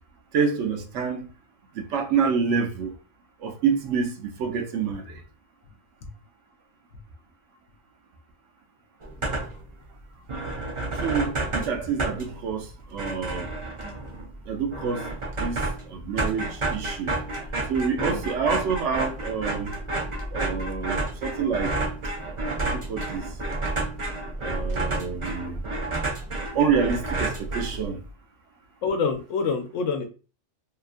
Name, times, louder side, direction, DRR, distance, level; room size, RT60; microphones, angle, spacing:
voice 1, 0.3-1.3 1.8-2.9 3.4-5.2 11.0-13.5 14.5-15.0 15.4-15.6 15.9-17.1 17.7-19.7 20.3-21.7 22.6-23.3 24.4-25.6 26.5-28.0, right 6 dB, 70° right, 0.9 m, -27 dB
sound 1, 9.0-9.7 10.0-10.1 10.3-28.1, right 2 dB, 55° right, 0.3 m, -30 dB
voice 2, 28.8-30.1, left 5 dB, 75° left, 0.9 m, -27 dB
2.8 x 2.3 x 2.5 m
omnidirectional pair, 1.3 m